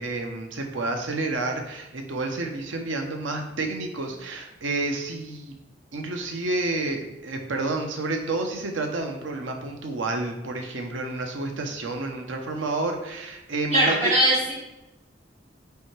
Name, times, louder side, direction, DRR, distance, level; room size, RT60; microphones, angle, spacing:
voice 1, 0.0-5.5 5.9-14.1, right 2 dB, 85° right, 3 dB, 0.9 m, -30 dB
voice 2, 13.7-14.5, right 1 dB, 35° right, -11 dB, 2.3 m, -20 dB
8.8 x 3.4 x 3.3 m, 0.97 s
head